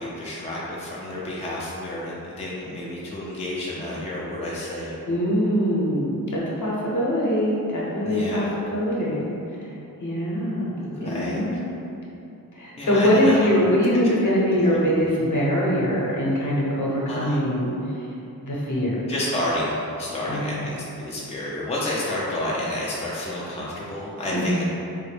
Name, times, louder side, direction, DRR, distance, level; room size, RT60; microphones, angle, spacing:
voice 1, 0.0-5.0 8.0-8.5 10.8-11.6 12.8-13.5 14.0-14.1 14.6-14.8 17.1-17.5 19.1-24.6, left 1 dB, 20° left, -6 dB, 0.4 m, -30 dB
voice 2, 5.1-9.3 9.6-9.7 10.0-10.6 11.0-11.6 12.5-17.7 18.4-19.0 20.2-20.6 24.3-24.6, equal, 55° left, -6 dB, 0.8 m, -23 dB
3.7 x 2.1 x 3.3 m, 2.9 s
wide cardioid pair, 85°, 37 cm